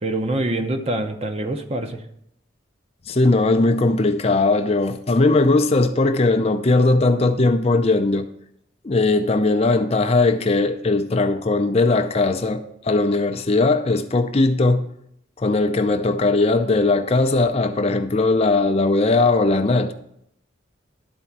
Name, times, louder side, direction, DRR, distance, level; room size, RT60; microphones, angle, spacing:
voice 1, 0.0-2.0, right 1 dB, 30° right, 0.8 m, -25 dB
voice 2, 3.1-8.3 8.8-14.9 15.4-19.9, left 2 dB, 30° left, 0.5 m, -19 dB
12.0 x 4.4 x 7.2 m
head